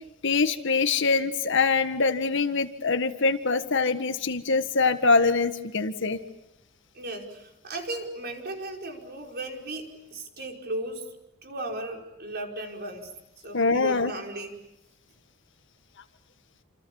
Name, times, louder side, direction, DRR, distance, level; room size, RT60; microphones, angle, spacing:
voice 1, 0.2-6.2 13.5-14.1, left 4 dB, 60° left, 9 dB, 1.7 m, -24 dB
voice 2, 6.9-11.1 11.4-14.5, right 1 dB, 50° right, 2 dB, 5.2 m, -36 dB
29.0 x 28.0 x 7.2 m, 0.89 s
head